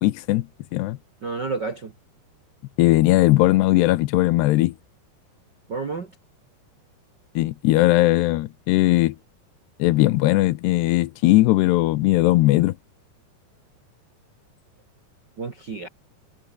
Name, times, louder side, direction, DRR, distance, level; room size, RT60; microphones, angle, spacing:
voice 1, 0.0-1.0 2.8-4.7 7.4-9.2 9.8-12.8, left 18 dB, 85° left, 2.9 m, -19 dB
voice 2, 1.2-1.9 5.7-6.1 15.4-15.9, right 4 dB, 50° right, 1.2 m, -30 dB
omnidirectional pair, 4.9 m